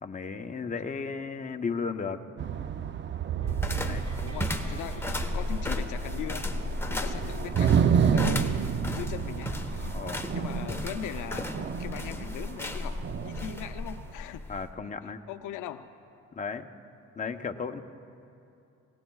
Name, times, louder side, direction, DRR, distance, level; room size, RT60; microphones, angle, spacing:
voice 1, 0.0-2.2 3.9-4.1 9.9-10.2 14.5-15.2 16.4-16.7 17.2-17.8, left 5 dB, 25° left, 6 dB, 0.9 m, -34 dB
sound 1, 2.4-14.1, right 7 dB, 40° right, 0.5 m, -30 dB
sound 2, 3.4-6.6, right 3 dB, 75° right, 1.9 m, -55 dB
sound 3, 3.5-14.7, left 2 dB, 10° left, 1.1 m, -35 dB
voice 2, 3.7-6.5 6.9-10.0 10.3-11.5 11.8-14.6 15.0-15.9, left 11 dB, 85° left, 9 dB, 0.6 m, -40 dB
27.5 x 18.5 x 2.4 m, 2.6 s
cardioid pair, 90°, 30 cm